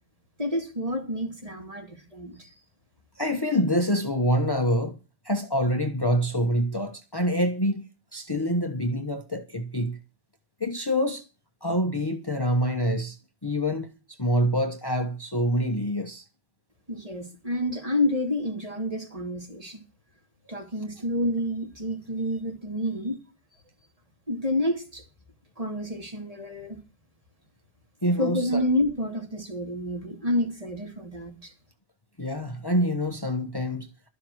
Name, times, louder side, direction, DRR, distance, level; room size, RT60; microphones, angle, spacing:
voice 1, 0.4-2.5 16.9-19.8 20.5-23.2 24.3-25.0 25.6-26.8 28.2-31.5, left 1 dB, 35° right, 2.9 m, -29 dB
voice 2, 3.2-5.0 5.2-7.8 8.1-10.0 10.6-11.2 11.6-13.2 13.4-13.9 14.2-16.2 28.0-28.6 32.2-33.9, equal, 25° left, 1.1 m, -26 dB
12.0 x 7.5 x 7.7 m
omnidirectional pair, 1.0 m